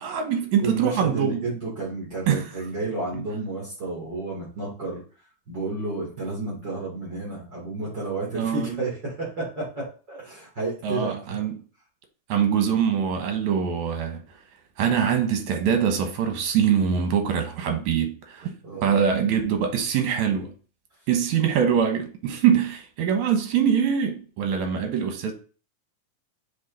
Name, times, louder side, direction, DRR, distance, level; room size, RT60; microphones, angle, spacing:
voice 1, 0.0-1.4 2.3-2.5 3.1-3.2 8.3-8.8 10.8-11.6 12.3-14.2 14.8-18.5 18.8-20.5 21.1-25.3, right 8 dB, 75° right, 2.5 m, -23 dB
voice 2, 0.6-5.0 5.5-11.2 18.6-18.8, right 3 dB, 35° right, 2.9 m, -31 dB
6.3 x 4.1 x 4.0 m
omnidirectional pair, 3.5 m